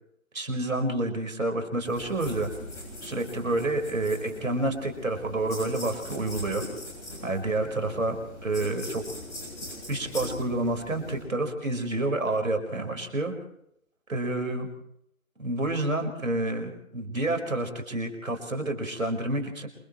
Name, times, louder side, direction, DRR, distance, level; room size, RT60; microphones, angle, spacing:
voice 1, 0.3-2.5 3.0-6.6 7.2-8.2 8.4-9.0 9.9-13.3 14.1-14.7 15.4-19.7, right 2 dB, 70° right, 5 dB, 5.2 m, -29 dB
sound 1, 1.8-11.2, left 1 dB, 10° left, 7.7 m, -41 dB
29.0 x 28.0 x 3.2 m, 0.75 s
figure-of-eight pair, 160°, 42 cm